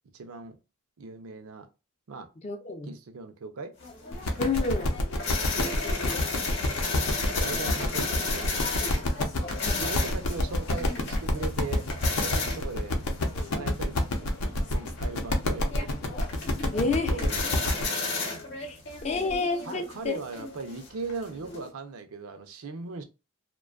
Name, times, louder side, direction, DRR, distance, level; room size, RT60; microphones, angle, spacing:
voice 1, 0.1-0.6 1.0-1.7 2.1-2.3 2.8-3.8 5.4-5.8 7.3-8.7 9.7-13.0 13.4-16.2 16.9-17.5 19.2-19.3 19.6-23.0, right 4 dB, 80° right, 0.5 m, -39 dB
voice 2, 2.4-2.9 4.4-4.9 9.6-9.8 16.7-17.3 18.6-18.8 19.0-20.1, left 3 dB, 30° left, 0.4 m, -29 dB
sound 1, 3.8-21.7, left 3 dB, 55° left, 0.7 m, -34 dB
sound 2, 4.1-17.8, left 1 dB, 85° left, 0.6 m, -29 dB
2.5 x 2.2 x 2.3 m
head